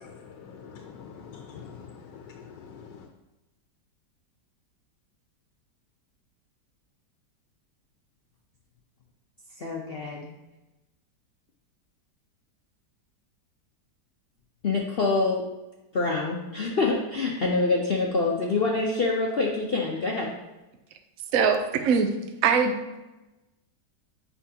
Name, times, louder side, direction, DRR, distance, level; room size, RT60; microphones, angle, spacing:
voice 1, 0.0-3.1, left 6 dB, 85° left, 3 dB, 1.4 m, -45 dB
voice 2, 9.6-10.3 14.6-15.4 15.9-20.3, left 3 dB, 55° left, -1 dB, 0.6 m, -26 dB
voice 3, 21.3-22.1 22.4-22.8, right 6 dB, 65° right, 6 dB, 0.9 m, -21 dB
8.5 x 5.5 x 2.8 m, 1.0 s
omnidirectional pair, 1.9 m